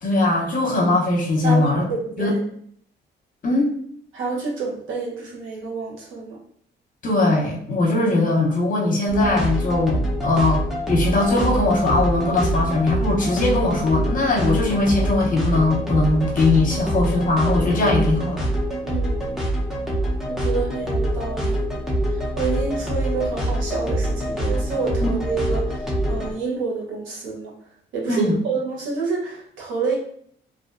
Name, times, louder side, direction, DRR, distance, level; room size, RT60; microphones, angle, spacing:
voice 1, 0.0-1.8 2.2-2.3 3.4-3.7 7.0-18.5 25.0-25.1 28.1-28.3, left 2 dB, 40° left, -2 dB, 0.8 m, -20 dB
voice 2, 1.4-2.4 4.1-6.4 18.8-19.4 20.3-21.6 22.1-27.5 27.9-30.0, right 4 dB, 85° right, -4 dB, 0.9 m, -28 dB
sound 1, 9.1-26.3, right 1 dB, ahead, 0.6 m, -25 dB
2.5 x 2.1 x 2.4 m, 0.64 s
cardioid pair, 90°, 20 cm